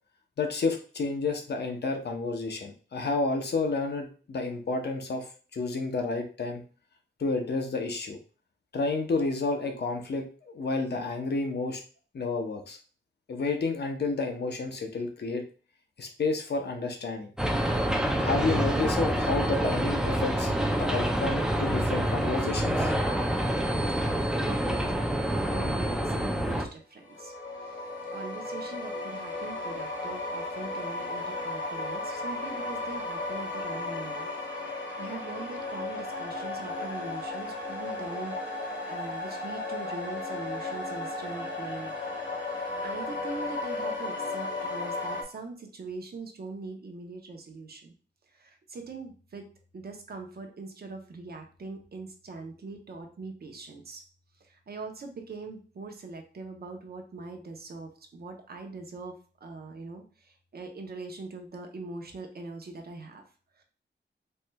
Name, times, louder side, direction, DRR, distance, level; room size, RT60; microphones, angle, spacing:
voice 1, 0.4-5.3 5.5-6.6 7.2-8.2 8.7-11.8 12.1-12.8 13.3-15.4 16.0-17.3 18.2-22.9, left 3 dB, 55° left, 4 dB, 0.7 m, -30 dB
sound 1, 17.4-26.7, right 1 dB, 5° right, 0.4 m, -27 dB
voice 2, 24.0-25.0 25.3-27.3 27.6-27.9 28.1-34.3 34.7-42.0 42.5-47.9 48.3-49.5 49.7-54.0 54.4-63.2 63.5-63.6, right 3 dB, 55° right, 3 dB, 0.7 m, -42 dB
sound 2, 27.0-45.2, left 2 dB, 75° left, 1.1 m, -35 dB
4.3 x 3.2 x 2.2 m, 0.39 s
wide cardioid pair, 150°, 20 cm